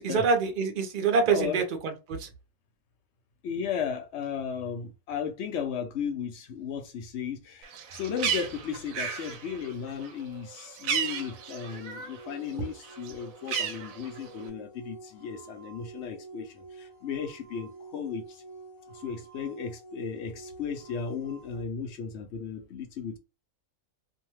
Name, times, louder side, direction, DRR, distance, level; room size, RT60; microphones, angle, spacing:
voice 1, 0.0-2.3, right 4 dB, 50° right, 0.7 m, -26 dB
voice 2, 3.4-18.4 18.9-23.2, left 7 dB, 65° left, 0.8 m, -35 dB
Bird, 7.6-12.2 12.6-14.5, right 7 dB, 80° right, 1.0 m, -34 dB
sound 1, 11.0-21.6, right 4 dB, 45° left, 0.4 m, -48 dB
2.7 x 2.1 x 3.0 m
omnidirectional pair, 1.4 m